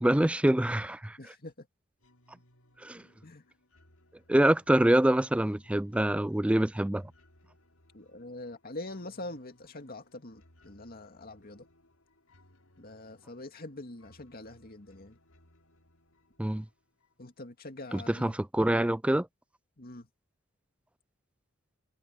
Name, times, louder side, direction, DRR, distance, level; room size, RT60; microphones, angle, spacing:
voice 1, 0.0-1.2 2.8-3.0 4.3-7.0 16.4-16.6 17.9-19.3, right 1 dB, 5° right, 0.3 m, -25 dB
voice 2, 1.2-1.7 3.2-3.4 7.9-11.7 12.8-15.2 17.2-18.3 19.8-20.1, left 2 dB, 45° left, 2.3 m, -44 dB
sound 1, 2.0-17.5, left 1 dB, 90° left, 6.8 m, -64 dB
head